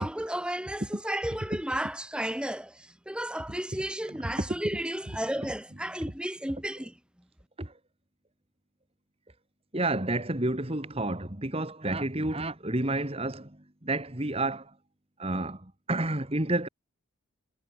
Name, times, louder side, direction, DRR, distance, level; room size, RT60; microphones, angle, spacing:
voice 1, 0.0-6.9, right 1 dB, 5° right, 1.6 m, -33 dB
voice 2, 9.7-13.5 13.8-14.7 15.2-16.7, right 2 dB, 25° right, 2.0 m, -30 dB
head